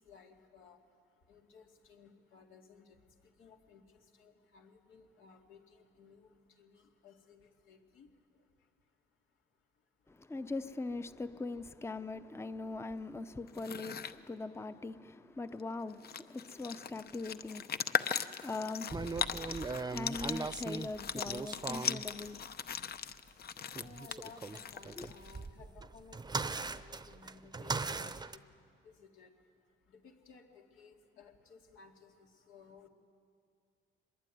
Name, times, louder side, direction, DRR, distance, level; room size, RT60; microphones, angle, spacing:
voice 1, 0.0-10.4 14.2-14.3 15.4-15.5 22.6-32.9, left 5 dB, 85° left, 2.6 m, -60 dB
voice 2, 10.1-22.5 25.0-25.1, left 3 dB, 15° left, 0.7 m, -42 dB
sound 1, 13.5-14.2 15.6-15.7 15.9-25.5, left 7 dB, 50° left, 0.9 m, -39 dB
sound 2, 18.9-22.0 23.7-28.4, right 4 dB, 20° right, 0.7 m, -39 dB
24.0 x 21.5 x 9.4 m
cardioid pair, 90°, 20 cm